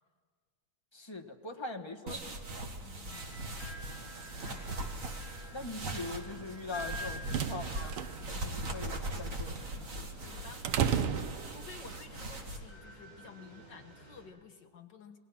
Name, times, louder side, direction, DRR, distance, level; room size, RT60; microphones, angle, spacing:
voice 1, 0.9-2.7 5.0-5.1 5.5-8.0 8.3-9.6, left 3 dB, 15° left, 4 dB, 1.1 m, -42 dB
sound 1, 2.1-12.6, right 1 dB, 40° right, 2.1 m, -40 dB
voice 2, 2.8-3.3 4.4-4.8 10.1-15.2, left 5 dB, 60° left, 6 dB, 1.8 m, -53 dB
wind chimes, 3.1-14.2, equal, 20° right, 7.3 m, -50 dB
sound 2, 6.7-12.0, right 8 dB, 90° right, 1.8 m, -35 dB
28.5 x 21.5 x 5.9 m, 1.6 s
omnidirectional pair, 2.4 m